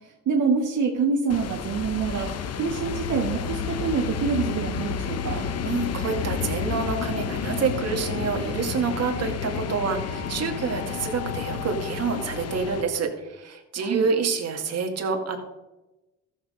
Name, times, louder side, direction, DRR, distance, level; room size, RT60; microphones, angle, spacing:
voice 1, 0.3-5.5 13.8-14.1, right 5 dB, 75° right, 0 dB, 1.6 m, -26 dB
sound 1, 1.3-12.8, left 7 dB, 55° left, 1.0 m, -31 dB
sound 2, 2.8-12.8, left 3 dB, 80° left, 1.7 m, -38 dB
voice 2, 5.6-15.4, right 5 dB, 55° right, 3 dB, 2.2 m, -27 dB
13.5 x 7.6 x 5.1 m, 1.0 s
cardioid pair, 90°, 30 cm